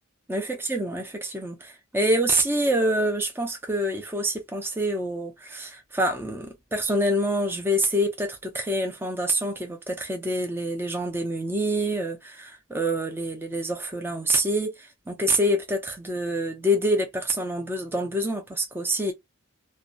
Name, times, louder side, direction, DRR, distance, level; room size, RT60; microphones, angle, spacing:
voice 1, 0.3-19.1, right 1 dB, 10° right, 0.5 m, -26 dB
2.7 x 2.2 x 2.3 m
head